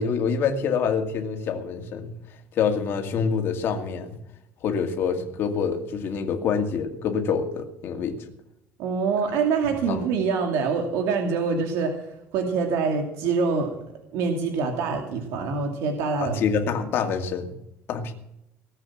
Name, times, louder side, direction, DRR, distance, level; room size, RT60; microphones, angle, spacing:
voice 1, 0.0-2.1 2.5-4.2 4.6-8.2 9.9-10.0 16.2-17.6 17.9-18.1, left 6 dB, 50° left, 5 dB, 2.3 m, -26 dB
voice 2, 8.8-12.1 12.3-13.7 14.1-16.4, right 5 dB, 80° right, 2 dB, 2.5 m, -25 dB
19.0 x 8.1 x 7.4 m, 0.83 s
cardioid pair, 145°, 5 cm